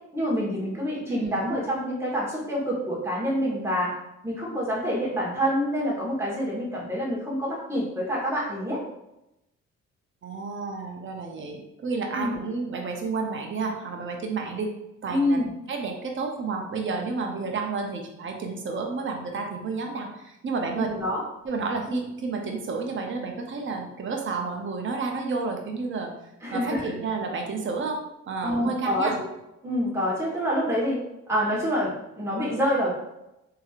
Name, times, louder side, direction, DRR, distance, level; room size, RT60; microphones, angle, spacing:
voice 1, 0.1-3.9 4.2-8.8 12.1-12.4 15.1-15.5 20.7-21.2 26.4-26.9 28.4-29.1 29.6-31.0 31.3-32.9, equal, 10° right, -6 dB, 1.3 m, -27 dB
voice 2, 1.1-1.6 10.2-14.7 15.0-15.4 15.7-20.9 21.4-26.1 26.5-28.0 28.3-29.2, right 4 dB, 40° right, 2 dB, 0.7 m, -31 dB
3.2 x 2.8 x 2.4 m, 0.88 s
cardioid pair, 90°, 30 cm